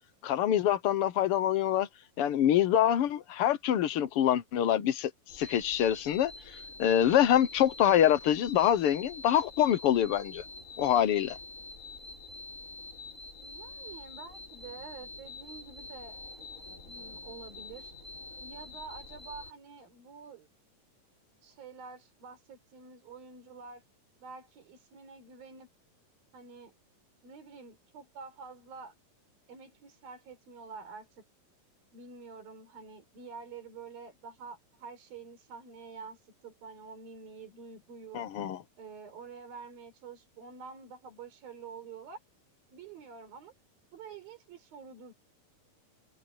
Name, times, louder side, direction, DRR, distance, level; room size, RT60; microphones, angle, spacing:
voice 1, 0.2-1.9 2.2-10.4 10.8-11.4 38.1-38.6, left 10 dB, 85° left, 1.2 m, -25 dB
sound 1, 5.3-19.5, left 3 dB, 20° left, 5.5 m, -46 dB
voice 2, 13.4-16.2 16.9-17.9 18.4-20.5 21.4-23.8 24.2-25.7 26.3-26.7 27.2-28.9 29.5-31.2 31.9-38.2 38.8-42.2 42.7-43.5 43.9-45.1, right 5 dB, 80° right, 6.1 m, -48 dB
omnidirectional pair, 4.1 m